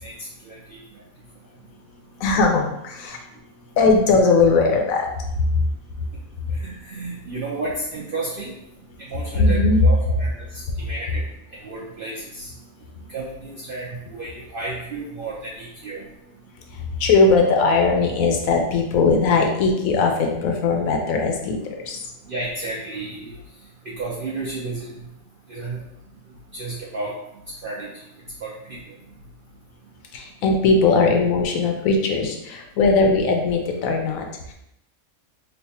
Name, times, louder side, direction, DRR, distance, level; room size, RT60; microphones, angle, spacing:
voice 1, 0.4-0.8 6.6-8.5 9.0-11.2 11.6-12.5 13.1-16.1 22.3-23.4 23.9-24.9 25.5-25.8 26.5-27.1 27.6-27.9 28.4-28.8, right 2 dB, 65° right, -4 dB, 0.5 m, -32 dB
voice 2, 2.2-3.2 3.8-5.1 5.5-5.6 9.3-9.8 16.7-22.0 30.1-34.5, left 3 dB, 75° left, 2 dB, 1.0 m, -19 dB
3.2 x 2.1 x 4.1 m, 0.82 s
omnidirectional pair, 1.5 m